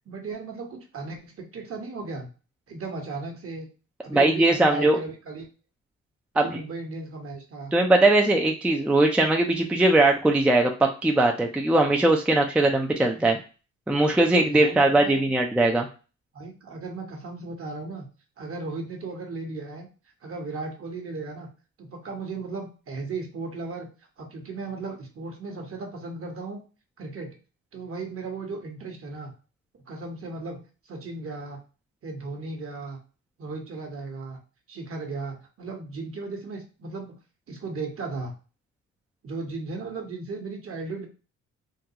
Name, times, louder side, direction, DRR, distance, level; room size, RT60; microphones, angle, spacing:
voice 1, 0.0-2.3 2.7-3.7 4.0-5.5 6.3-7.7 14.5-15.2 16.3-18.0 18.4-19.9 20.2-21.5 21.8-23.9 24.2-26.6 27.0-27.3 27.7-29.3 29.9-30.6 30.9-31.6 32.0-33.0 33.4-34.4 34.7-37.1 37.5-38.4 39.2-41.1, right 3 dB, 45° right, 3 dB, 1.1 m, -36 dB
voice 2, 4.1-5.0 6.4-6.5 7.7-13.4 13.9-15.9, right 2 dB, 5° right, 2 dB, 0.4 m, -20 dB
3.7 x 2.3 x 2.8 m, 0.34 s
cardioid pair, 90°, 30 cm